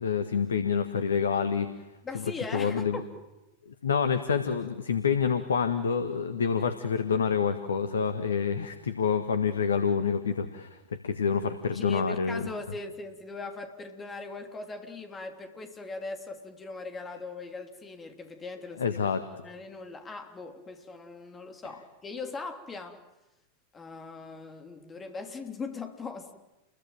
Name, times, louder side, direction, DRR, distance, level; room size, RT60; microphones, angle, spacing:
voice 1, 0.0-1.9 2.5-3.0 3.8-10.8 11.0-12.5 18.8-19.2, left 6 dB, 70° left, 10 dB, 1.6 m, -27 dB
voice 2, 2.0-3.0 11.7-19.0 19.4-23.0 23.7-26.3, left 3 dB, 20° left, 6 dB, 3.2 m, -40 dB
29.5 x 22.0 x 8.9 m, 1.0 s
figure-of-eight pair, 90°, 0 cm